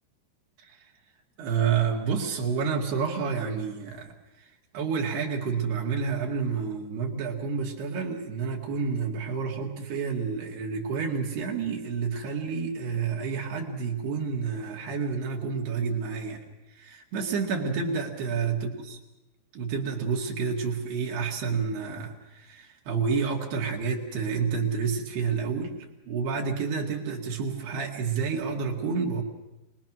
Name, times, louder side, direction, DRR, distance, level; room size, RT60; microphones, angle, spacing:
voice 1, 1.4-4.1 4.4-4.5 4.7-16.4 16.7-18.7 19.5-25.7 26.1-29.2, right 5 dB, 75° right, -1 dB, 4.0 m, -29 dB
25.5 x 20.5 x 6.1 m, 0.99 s
omnidirectional pair, 4.7 m